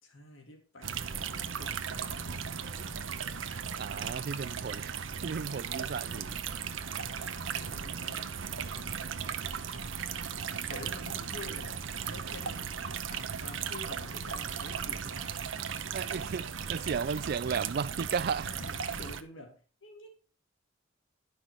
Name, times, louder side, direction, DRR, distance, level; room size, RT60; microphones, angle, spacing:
voice 1, 0.0-3.1 7.0-9.2 9.7-10.0 10.2-12.8 13.1-15.7 16.2-16.3 16.8-17.0 18.4-20.1, left 2 dB, 75° left, 2.8 m, -49 dB
sound 1, 0.8-19.2, right 7 dB, 75° right, 0.8 m, -37 dB
voice 2, 3.8-6.4 15.9-18.5, right 6 dB, 50° right, 0.4 m, -34 dB
10.5 x 6.2 x 4.7 m
head